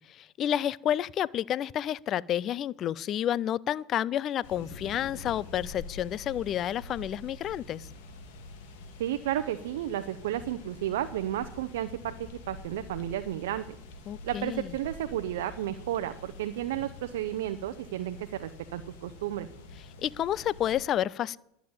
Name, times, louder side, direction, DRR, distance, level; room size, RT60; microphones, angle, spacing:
voice 1, 0.1-7.9 14.1-14.8 20.0-21.4, left 11 dB, 45° left, 23 dB, 0.4 m, -30 dB
sound 1, 4.4-20.8, left 3 dB, 75° left, 2.1 m, -46 dB
voice 2, 9.0-12.1 12.5-13.8 14.2-19.5, right 12 dB, 80° right, 9 dB, 0.7 m, -32 dB
11.5 x 7.0 x 8.8 m, 0.78 s
hypercardioid pair, 100°, 0 cm